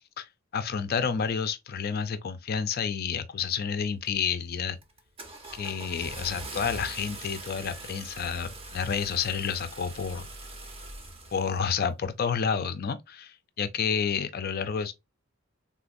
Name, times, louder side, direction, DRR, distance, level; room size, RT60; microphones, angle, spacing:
voice 1, 0.2-4.8 5.5-10.3 11.3-14.9, left 6 dB, 50° left, 0.4 m, -30 dB
Car / Engine starting, 4.0-4.4 4.8-11.8, right 2 dB, 30° right, 0.7 m, -42 dB
3.7 x 2.5 x 2.5 m
head